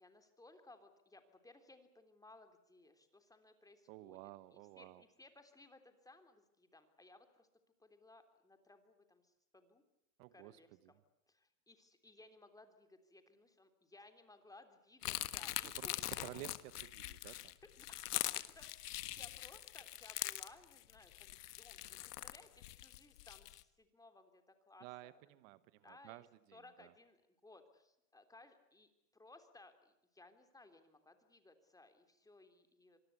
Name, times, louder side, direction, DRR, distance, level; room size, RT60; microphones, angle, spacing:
voice 1, 0.0-4.2 4.5-7.5 7.8-9.8 10.3-11.0 11.3-16.1 17.2-17.3 17.6-25.2 25.8-26.2 26.5-33.0, left 2 dB, 10° left, 8 dB, 3.4 m, -62 dB
voice 2, 3.9-5.0 10.2-10.9 15.6-17.6 24.8-26.9, right 17 dB, 60° right, 16 dB, 1.2 m, -53 dB
sound 1, 15.0-23.6, left 14 dB, 85° left, 1.6 m, -43 dB
25.5 x 20.0 x 8.3 m, 0.89 s
supercardioid pair, 125°, 45 cm